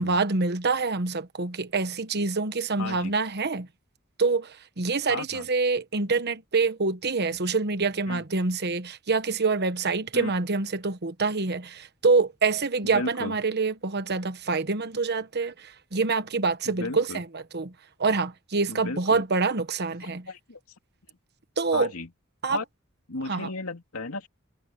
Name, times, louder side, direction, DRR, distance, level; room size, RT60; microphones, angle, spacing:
voice 1, 0.0-3.7 4.2-17.7 18.0-20.2 21.6-21.9 22.4-22.6 23.3-23.5, right 4 dB, 50° right, 1.2 m, -26 dB
voice 2, 2.8-3.1 5.1-5.5 8.1-8.2 10.1-10.3 12.9-13.3 16.6-17.2 18.7-19.2 20.0-20.6 21.7-22.1 22.5-22.6 23.1-24.3, left 3 dB, 85° left, 2.7 m, -35 dB
head